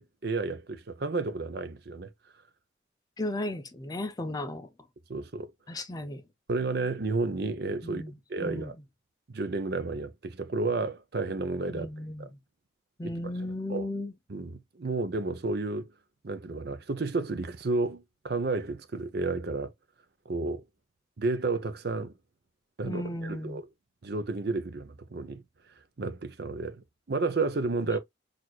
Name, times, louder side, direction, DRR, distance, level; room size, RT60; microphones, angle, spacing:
voice 1, 0.0-2.1 5.1-5.5 6.5-8.0 8.3-8.7 9.3-11.9 12.2-12.3 13.0-13.3 13.7-13.9 14.3-15.9 16.2-19.7 20.3-20.6 21.2-22.1 22.8-23.6 24.0-25.4 26.0-28.0, right 3 dB, 55° right, 0.6 m, -31 dB
voice 2, 3.2-4.7 5.7-6.2 7.8-8.7 11.7-12.4 13.0-14.1 22.8-23.6 27.8-28.0, left 1 dB, 20° left, 0.4 m, -35 dB
6.1 x 2.5 x 2.3 m
head